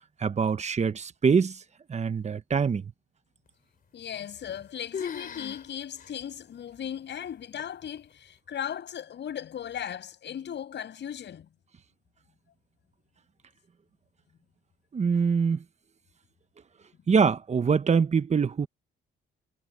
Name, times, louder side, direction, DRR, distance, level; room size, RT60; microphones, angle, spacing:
voice 1, 0.2-1.6 1.9-2.9 14.9-15.6 17.1-18.7, right 6 dB, 35° right, 1.2 m, -24 dB
voice 2, 3.9-11.5, left 9 dB, 60° left, 7.6 m, -37 dB
sound 1, 4.2-4.7 4.9-5.7 6.0-6.1 6.8-6.9 7.6-8.0, left 7 dB, 45° left, 3.6 m, -37 dB
cardioid pair, 90°, 20 cm